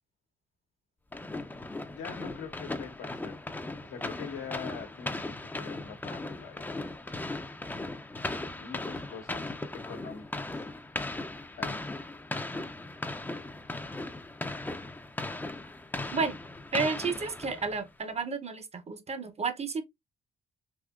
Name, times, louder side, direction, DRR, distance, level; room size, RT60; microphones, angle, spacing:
sound 1, 1.1-17.9, left 2 dB, 10° left, 0.4 m, -38 dB
voice 1, 1.9-3.6 3.9-6.8 8.5-10.5 11.6-11.8, left 6 dB, 90° left, 1.0 m, -44 dB
voice 2, 16.7-19.8, right 4 dB, 30° right, 0.6 m, -31 dB
3.6 x 2.8 x 2.3 m
cardioid pair, 90°, 20 cm